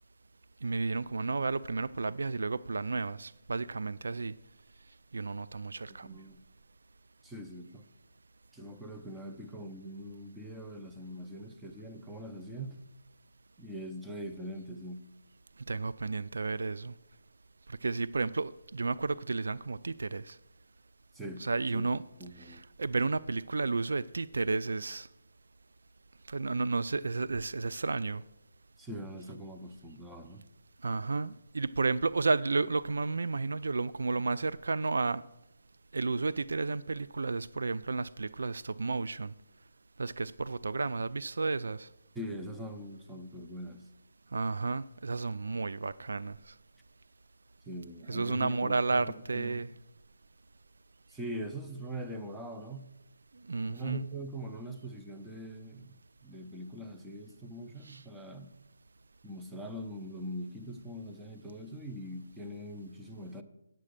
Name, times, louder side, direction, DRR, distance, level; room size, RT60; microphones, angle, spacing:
voice 1, 0.6-4.3 5.1-6.2 15.7-16.9 17.7-20.4 21.4-22.0 22.4-25.1 26.3-28.2 30.8-35.2 35.9-39.3 40.0-41.9 44.3-46.5 48.1-49.7 53.5-54.0 57.8-58.0, right 3 dB, 80° right, 0.3 m, -32 dB
voice 2, 5.9-6.4 7.2-7.8 8.5-12.8 13.6-15.0 21.1-21.5 21.7-21.9 22.2-22.6 28.8-30.4 42.1-43.9 47.7-49.7 51.1-52.9 53.7-58.5 59.2-63.4, right 1 dB, 5° right, 0.6 m, -42 dB
9.4 x 7.5 x 6.6 m
hypercardioid pair, 165°, 0 cm